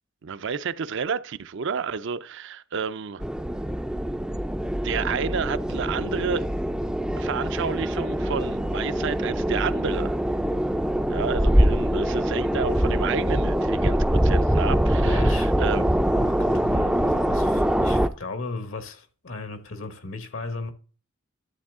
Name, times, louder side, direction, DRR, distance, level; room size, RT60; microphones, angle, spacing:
voice 1, 0.2-3.2 4.8-6.5 7.2-10.2 11.1-15.9, right 6 dB, 60° right, 0.5 m, -30 dB
sound 1, 3.2-18.1, equal, 5° right, 0.4 m, -23 dB
voice 2, 15.0-15.5 16.1-20.7, left 3 dB, 70° left, 1.2 m, -35 dB
11.5 x 6.9 x 3.6 m
head